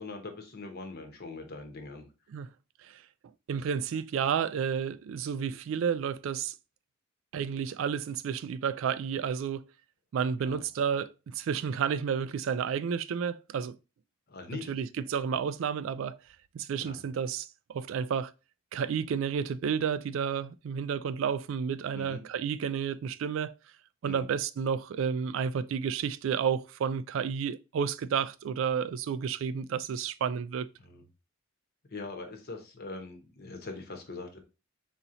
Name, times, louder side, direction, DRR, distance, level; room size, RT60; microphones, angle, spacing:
voice 1, 0.0-2.1 10.4-10.6 14.3-14.7 16.8-17.0 21.9-22.2 24.0-24.3 30.8-31.1 31.9-34.4, left 3 dB, 50° left, 1.0 m, -42 dB
voice 2, 3.5-6.5 7.3-9.6 10.1-13.8 14.7-16.2 16.5-18.3 18.7-23.5 24.0-30.7, right 7 dB, 70° right, 0.3 m, -31 dB
4.1 x 2.9 x 3.8 m
head